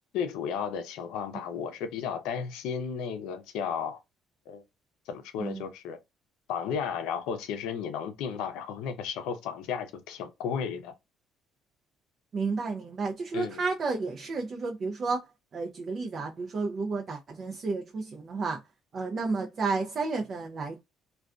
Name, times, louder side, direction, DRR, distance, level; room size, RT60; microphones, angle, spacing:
voice 1, 0.1-4.0 4.5-4.6 5.1-6.0 6.5-10.9 13.3-13.6, left 7 dB, 85° left, 0.5 m, -34 dB
voice 2, 12.3-15.2 15.5-18.6 18.9-20.8, right 4 dB, 50° right, 0.5 m, -31 dB
2.4 x 2.3 x 2.2 m
cardioid pair, 85°, 0 cm